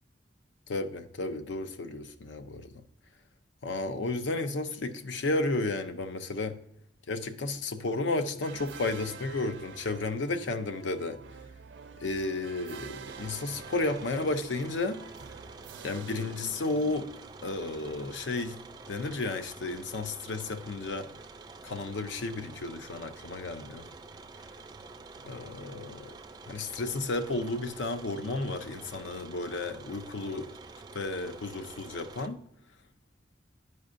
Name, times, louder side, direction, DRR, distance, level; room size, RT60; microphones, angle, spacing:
voice 1, 0.7-2.8 3.6-6.6 7.1-11.2 12.0-15.0 15.8-17.1 17.4-18.6 18.9-21.1 21.6-23.9 25.2-26.1 26.5-30.5 30.9-32.4, left 2 dB, 90° left, 0.5 m, -33 dB
sound 1, 8.4-17.3, right 6 dB, 80° right, 0.5 m, -47 dB
sound 2, 13.1-32.3, right 3 dB, 20° right, 0.3 m, -48 dB
9.5 x 5.2 x 2.5 m
head